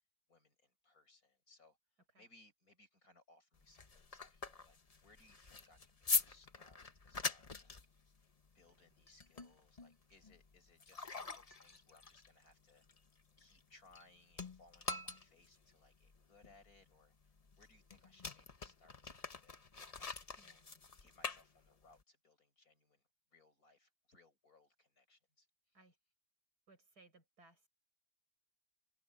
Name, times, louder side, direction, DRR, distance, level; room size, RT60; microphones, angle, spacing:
voice 1, 0.3-4.8 5.0-7.8 8.1-8.2 8.5-12.8 13.4-19.6 20.3-20.6 21.0-23.0 23.3-25.8, left 2 dB, 55° left, 6.3 m, -67 dB
sound 1, 3.5-14.0 14.3-22.0, left 4 dB, 30° left, 0.9 m, -44 dB
voice 2, 20.4-20.8 25.7-26.0 26.7-27.7, right 2 dB, 65° right, 7.0 m, -65 dB
omnidirectional pair, 1.8 m